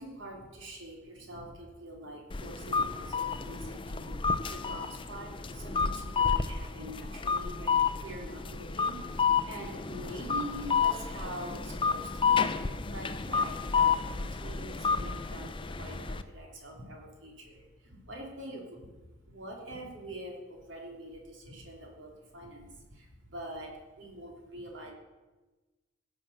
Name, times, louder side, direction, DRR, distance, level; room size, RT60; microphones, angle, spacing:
voice 1, 0.0-24.9, right 1 dB, 65° right, 0 dB, 2.9 m, -45 dB
sound 1, 2.3-16.2, left 6 dB, 25° left, 0.5 m, -30 dB
16.5 x 6.8 x 6.6 m, 1.2 s
head